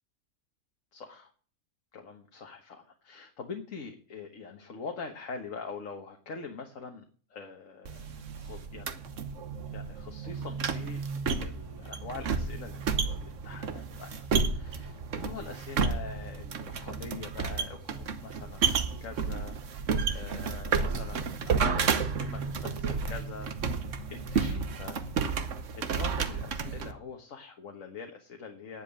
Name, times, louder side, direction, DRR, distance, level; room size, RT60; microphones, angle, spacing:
voice 1, 0.9-1.3 1.9-7.1 7.3-8.1 8.3-8.9 9.7-19.9 20.1-23.8 24.1-25.0 25.8-28.8, left 5 dB, 70° left, 3 dB, 1.7 m, -44 dB
sound 1, 7.9-26.9, right 5 dB, 65° right, 1.4 m, -31 dB
10.5 x 7.5 x 8.7 m, 0.44 s
omnidirectional pair, 1.4 m